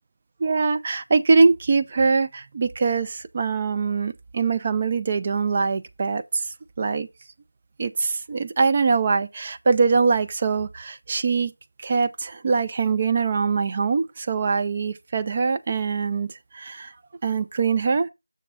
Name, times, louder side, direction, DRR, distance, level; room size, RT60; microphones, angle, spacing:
voice 1, 0.4-6.4 6.8-7.1 7.8-11.5 11.8-16.3 16.5-16.9 17.2-18.1, right 4 dB, 15° right, 0.4 m, -23 dB
7.1 x 6.9 x 3.5 m
figure-of-eight pair, 175°, 0 cm